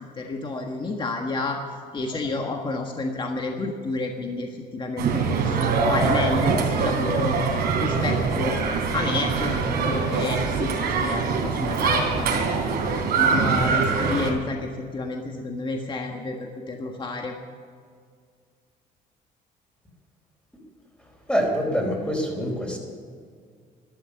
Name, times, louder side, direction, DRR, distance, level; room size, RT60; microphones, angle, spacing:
voice 1, 0.2-1.6 1.9-8.6 8.9-12.3 13.1-17.3, left 3 dB, 30° left, 2 dB, 1.5 m, -30 dB
sound 1, 5.0-14.3, right 5 dB, 70° right, 3.6 m, -23 dB
voice 2, 21.3-22.8, equal, 5° left, 1 dB, 4.3 m, -25 dB
12.5 x 12.5 x 6.9 m, 2.1 s
cardioid pair, 110°, 17 cm